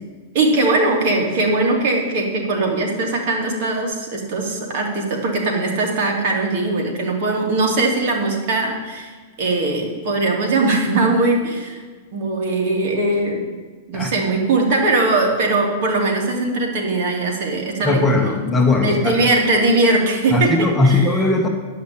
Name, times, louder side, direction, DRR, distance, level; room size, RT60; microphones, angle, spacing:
voice 1, 0.3-9.1 9.4-11.8 12.1-13.4 13.9-18.3 18.8-20.6 20.8-21.1, right 2 dB, 55° right, 0 dB, 2.8 m, -20 dB
voice 2, 17.8-19.3 20.3-21.5, left 2 dB, 10° left, 1 dB, 1.2 m, -18 dB
11.0 x 5.7 x 8.5 m, 1.4 s
supercardioid pair, 145°, 0 cm